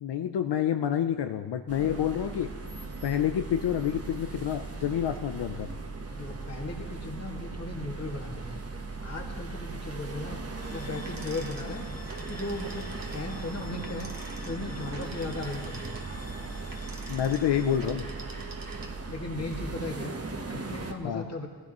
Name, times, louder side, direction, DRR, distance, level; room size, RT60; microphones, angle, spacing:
voice 1, 0.0-2.5 3.0-5.7 17.1-18.0 21.0-21.2, left 9 dB, 90° left, 7 dB, 0.6 m, -28 dB
sound 1, 1.7-20.9, right 3 dB, 35° right, 1.1 m, -38 dB
voice 2, 6.1-8.6 9.0-10.4 10.7-11.9 12.2-14.1 14.4-15.9 19.1-20.1 20.5-21.5, left 2 dB, 40° left, 0 dB, 2.1 m, -37 dB
sound 2, 10.5-17.8, left 4 dB, 60° left, 1.3 m, -51 dB
sound 3, 11.1-19.2, right 4 dB, 55° right, 1.4 m, -46 dB
17.0 x 15.5 x 3.0 m, 1.4 s
wide cardioid pair, 85°, 40 cm